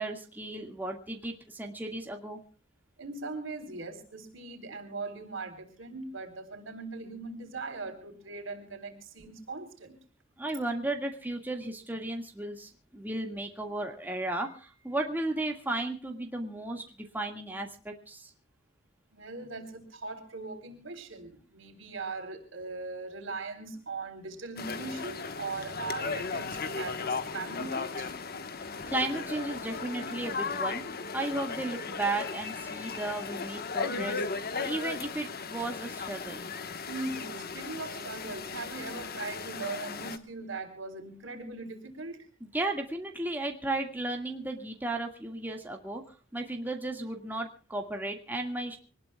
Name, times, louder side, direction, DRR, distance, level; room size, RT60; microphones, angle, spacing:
voice 1, 0.0-2.4 10.4-16.8 17.1-18.3 28.8-30.8 31.1-36.4 42.4-46.0 46.3-48.8, right 2 dB, 10° right, 2 dB, 1.9 m, -34 dB
voice 2, 3.0-10.0 19.1-28.1 28.7-28.8 36.9-42.3, right 3 dB, 70° right, 5 dB, 4.0 m, -40 dB
sound 1, 24.6-40.2, left 4 dB, 50° left, 1.3 m, -36 dB
24.5 x 19.5 x 2.3 m, 0.40 s
head